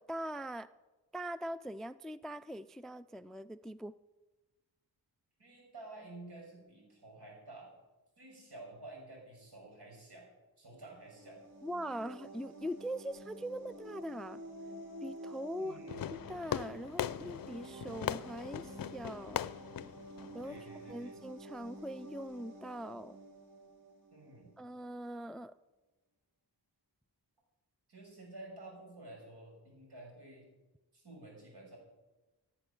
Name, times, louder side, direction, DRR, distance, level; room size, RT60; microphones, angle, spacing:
voice 1, 0.1-0.7 1.1-3.9 11.6-14.4 15.0-15.8 16.3-19.5 20.3-20.6 20.9-23.2 24.6-25.5, equal, ahead, 16 dB, 0.4 m, -42 dB
voice 2, 5.4-7.7 8.2-10.3 10.6-11.4 15.6-16.1 20.4-21.2 24.1-24.6 27.9-30.4 30.9-31.8, right 2 dB, 70° right, -1 dB, 6.2 m, -51 dB
sound 1, 10.9-24.5, right 1 dB, 50° right, 3.1 m, -50 dB
Fireworks, 15.9-20.9, left 10 dB, 55° left, 0.5 m, -40 dB
15.5 x 9.0 x 7.0 m, 1.1 s
cardioid pair, 55°, 41 cm